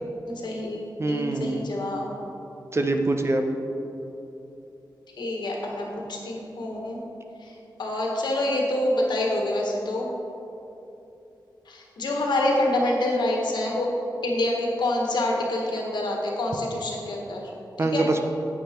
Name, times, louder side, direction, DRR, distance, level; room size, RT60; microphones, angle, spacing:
voice 1, 0.3-2.1 5.2-7.0 7.4-7.5 7.8-10.1 11.7-13.9 14.2-17.5 17.8-18.1, left 1 dB, 85° left, -1 dB, 1.7 m, -27 dB
voice 2, 1.0-1.6 2.7-3.4 17.8-18.3, right 2 dB, 35° right, 5 dB, 0.9 m, -24 dB
9.0 x 8.8 x 4.5 m, 2.9 s
wide cardioid pair, 80°, 7 cm